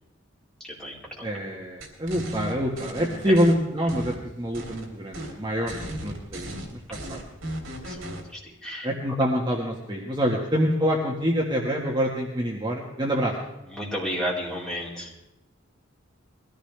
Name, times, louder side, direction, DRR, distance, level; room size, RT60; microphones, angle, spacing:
voice 1, 0.6-1.3 3.2-3.4 7.8-8.0 8.3-8.9 13.7-15.1, equal, 5° left, -5 dB, 4.3 m, -32 dB
voice 2, 1.2-6.5 6.9-7.2 8.8-13.3, equal, 20° right, -2 dB, 1.6 m, -26 dB
sound 1, 1.8-3.5 3.9-4.9 5.1-5.3 5.7-8.2, right 1 dB, 75° right, 3.5 m, -35 dB
22.0 x 15.5 x 3.4 m, 0.95 s
head